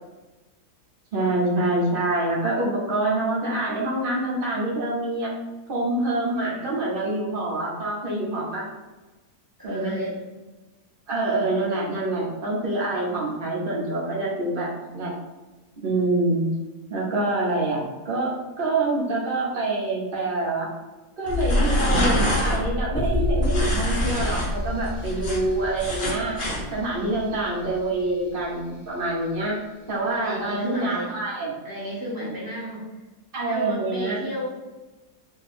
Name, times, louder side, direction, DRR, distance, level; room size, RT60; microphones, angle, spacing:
voice 1, 1.1-5.3 5.7-8.7 9.6-10.0 11.1-15.1 15.8-16.5 16.9-20.7 21.2-26.4 26.7-29.6 29.9-31.5 33.3-34.2, right 2 dB, 40° right, -4 dB, 0.9 m, -26 dB
voice 2, 9.6-10.2 30.1-31.2 31.6-33.0 33.5-34.5, equal, 20° right, -7 dB, 0.6 m, -33 dB
sound 1, 21.2-22.6 23.4-24.5 24.8-26.6, equal, 40° left, 0.9 m, -27 dB
sound 2, 21.3-28.1 28.4-28.5, left 1 dB, 15° left, 1.2 m, -27 dB
2.9 x 2.7 x 4.2 m, 1.2 s
omnidirectional pair, 1.7 m